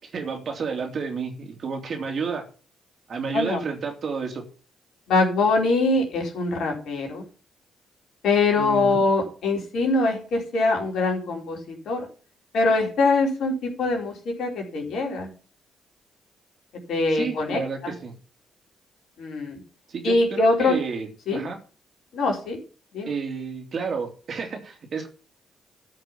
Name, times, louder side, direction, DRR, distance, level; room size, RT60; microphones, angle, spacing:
voice 1, 0.0-2.5 3.1-4.4 8.6-9.0 17.1-18.1 19.9-21.6 23.0-25.1, right 5 dB, 55° right, 3 dB, 3.2 m, -31 dB
voice 2, 5.1-7.2 8.2-12.1 12.5-14.1 14.4-15.3 16.9-17.9 19.2-19.6 20.0-20.8 21.3-21.4 22.1-22.6 22.9-23.1, left 3 dB, 65° left, 0 dB, 4.4 m, -23 dB
13.0 x 6.0 x 7.3 m, 0.38 s
hypercardioid pair, 40°, 0 cm